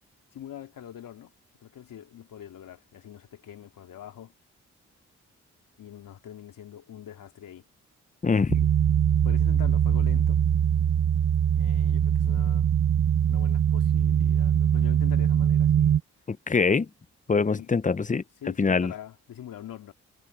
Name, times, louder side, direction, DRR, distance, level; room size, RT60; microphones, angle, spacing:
voice 1, 0.3-1.3 1.6-4.3 5.8-7.6 8.6-8.7 9.2-10.4 11.5-12.7 13.3-15.9 17.6-17.7 18.4-19.9, left 10 dB, 80° left, 3.1 m, -43 dB
voice 2, 8.2-8.6 16.3-16.9 17.3-18.2 18.6-18.9, left 4 dB, 25° left, 0.7 m, -24 dB
sound 1, 8.5-16.0, right 9 dB, 55° right, 1.2 m, -22 dB
supercardioid pair, 45°, 33 cm